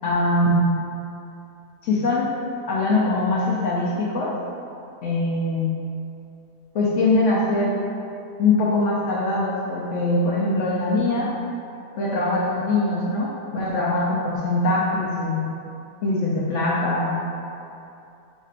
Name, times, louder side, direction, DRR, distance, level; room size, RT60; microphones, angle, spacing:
voice 1, 0.0-0.7 1.8-2.3 2.7-4.3 5.0-5.7 6.7-7.8 8.4-11.3 12.0-15.5 16.0-17.2, left 2 dB, 75° left, -6 dB, 0.7 m, -22 dB
3.3 x 2.4 x 4.3 m, 2.6 s
omnidirectional pair, 1.7 m